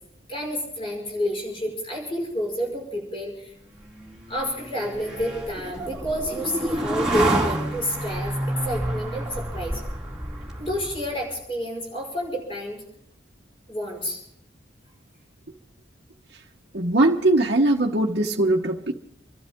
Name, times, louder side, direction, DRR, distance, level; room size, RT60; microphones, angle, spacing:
voice 1, 0.3-3.5 4.3-8.3 8.6-9.8 10.6-12.8 13.7-14.2, equal, 30° left, -1 dB, 5.3 m, -29 dB
sound 1, 3.8-11.2, right 1 dB, 5° right, 2.4 m, -29 dB
voice 2, 16.7-18.9, right 2 dB, 60° right, -3 dB, 1.1 m, -20 dB
28.0 x 12.5 x 3.7 m, 0.77 s
head